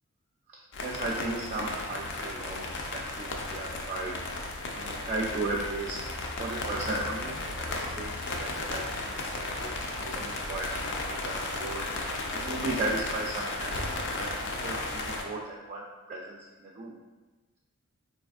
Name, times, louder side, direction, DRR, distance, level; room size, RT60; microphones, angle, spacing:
voice 1, 0.5-2.7 2.9-4.1 4.7-6.0 6.4-9.7 10.0-11.9 12.3-14.3 14.6-17.0, right 2 dB, 40° right, -3 dB, 0.3 m, -36 dB
sound 1, 0.7-15.2, left 2 dB, 60° left, 0.5 m, -34 dB
4.1 x 2.6 x 2.4 m, 1.2 s
head